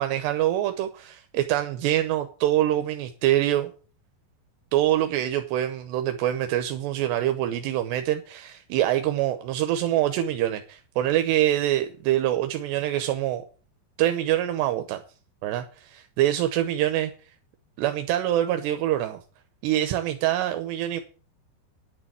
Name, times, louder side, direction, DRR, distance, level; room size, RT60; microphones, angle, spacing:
voice 1, 0.0-3.7 4.7-13.4 14.0-15.0 15.4-17.1 17.8-19.2 19.6-21.0, right 13 dB, 80° right, 2.9 m, -25 dB
10.5 x 6.7 x 7.3 m
omnidirectional pair, 5.0 m